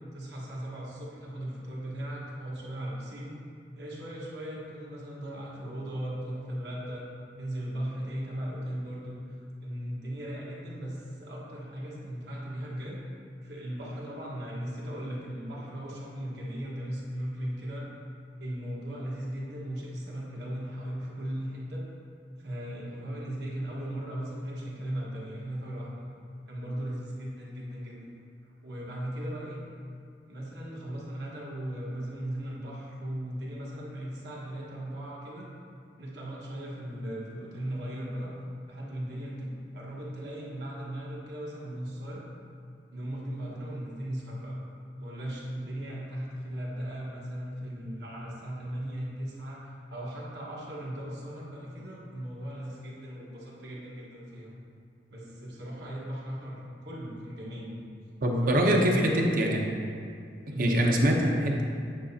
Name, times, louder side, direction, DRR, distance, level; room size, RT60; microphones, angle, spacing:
voice 1, 0.1-3.3 3.7-7.0 7.4-9.3 9.6-13.0 13.4-17.9 18.4-21.8 22.4-26.0 26.5-28.1 28.6-29.6 30.3-35.5 36.0-38.3 38.7-42.2 42.9-44.6 45.0-49.6 49.9-54.5 55.1-57.8 58.4-59.1 60.5-60.8, right 1 dB, 70° right, -5 dB, 1.4 m, -37 dB
voice 2, 58.2-59.6 60.6-61.6, equal, 50° right, 0 dB, 0.7 m, -24 dB
8.8 x 5.0 x 2.8 m, 2.3 s
head